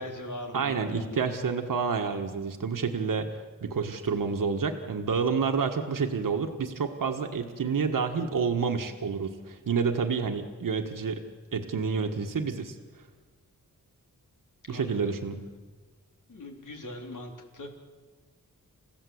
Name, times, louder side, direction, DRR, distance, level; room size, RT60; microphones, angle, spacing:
voice 1, 0.0-1.3 14.7-15.1 16.3-17.7, left 1 dB, 70° left, 2 dB, 4.1 m, -40 dB
voice 2, 0.5-3.3 3.6-11.2 11.5-12.8 14.7-15.4, right 5 dB, 85° right, 5 dB, 1.7 m, -29 dB
29.5 x 16.0 x 8.1 m, 1.4 s
wide cardioid pair, 110°, 32 cm